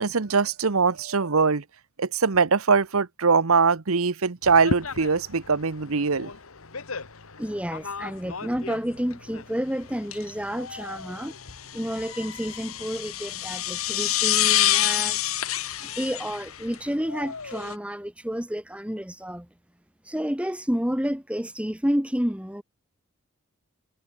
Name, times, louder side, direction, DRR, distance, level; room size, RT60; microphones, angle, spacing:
voice 1, 0.0-1.6 2.0-6.3, right 5 dB, 80° right, 1.0 m, -22 dB
sound 1, 4.4-17.7, left 11 dB, 80° left, 1.7 m, -29 dB
voice 2, 7.4-11.3 11.7-15.3 15.8-19.5 20.0-22.6, equal, 5° right, 1.6 m, -30 dB
head